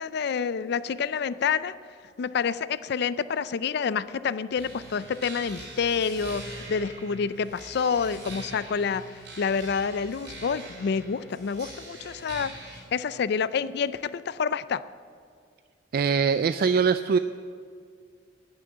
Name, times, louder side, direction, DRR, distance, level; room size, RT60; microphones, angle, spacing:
voice 1, 0.0-1.7 2.2-9.0 9.4-14.8, left 6 dB, 60° left, 16 dB, 0.4 m, -28 dB
sound 1, 4.5-12.8, right 2 dB, 70° right, 4.3 m, -43 dB
voice 2, 15.9-17.2, right 6 dB, 55° right, 12 dB, 0.3 m, -22 dB
10.5 x 9.8 x 8.5 m, 2.2 s
head